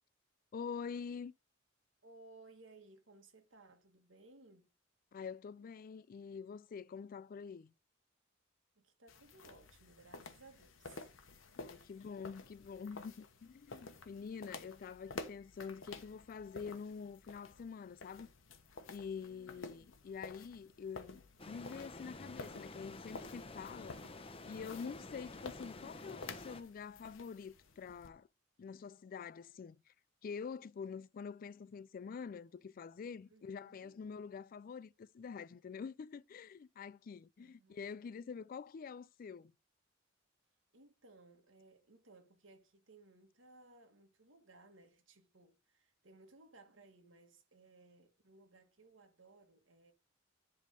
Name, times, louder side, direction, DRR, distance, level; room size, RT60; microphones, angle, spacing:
voice 1, 0.5-1.3 5.1-7.7 11.6-18.3 18.9-24.0 24.5-28.3 28.6-29.9 30.2-39.5, left 6 dB, 45° left, 0.3 m, -46 dB
voice 2, 2.0-4.7 8.7-11.1 11.6-11.9 19.2-19.9 33.3-34.0 37.4-37.8 40.7-49.9, right 3 dB, 75° right, 1.7 m, -61 dB
sound 1, 9.1-28.1, left 3 dB, 90° left, 1.1 m, -52 dB
sound 2, 21.4-26.6, left 2 dB, 30° left, 0.8 m, -50 dB
10.5 x 3.5 x 5.1 m
head